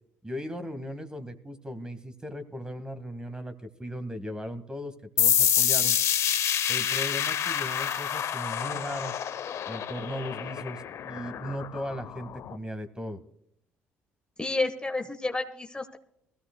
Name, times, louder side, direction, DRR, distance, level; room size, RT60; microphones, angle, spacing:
voice 1, 0.2-6.0 6.7-9.2 9.7-13.2, equal, 15° right, 10 dB, 1.7 m, -37 dB
sound 1, 5.2-12.6, left 9 dB, 60° left, 0.8 m, -28 dB
voice 2, 14.4-16.0, left 2 dB, 15° left, 6 dB, 1.2 m, -30 dB
21.0 x 16.0 x 2.2 m, 0.73 s
supercardioid pair, 65°, 6 cm